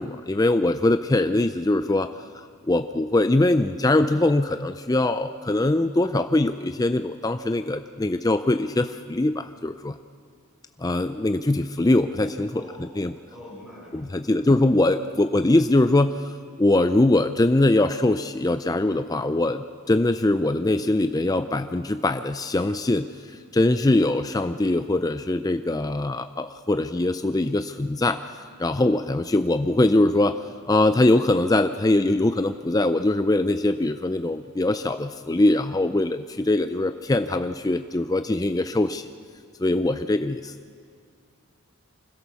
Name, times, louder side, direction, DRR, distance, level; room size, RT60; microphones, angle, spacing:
voice 1, 0.0-2.1 2.6-9.9 10.8-13.1 13.9-28.2 28.6-30.4 30.7-39.0 39.6-40.5, left 2 dB, 15° left, 9 dB, 0.4 m, -22 dB
voice 2, 12.5-12.9 13.3-14.4, left 1 dB, 5° right, -8 dB, 7.1 m, -44 dB
25.0 x 16.0 x 7.0 m, 2.2 s
head